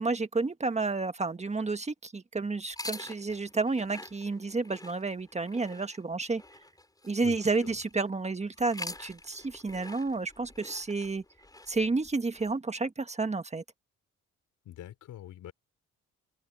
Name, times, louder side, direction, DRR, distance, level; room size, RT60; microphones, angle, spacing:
voice 1, 0.0-6.4 7.0-11.2 11.7-13.6, right 3 dB, 20° right, 1.5 m, -31 dB
sound 1, 2.6-8.0 8.5-12.5, left 2 dB, 10° left, 5.5 m, -46 dB
voice 2, 7.2-7.8 14.7-15.5, left 12 dB, 80° left, 3.9 m, -45 dB
open air
cardioid pair, 90°, 30 cm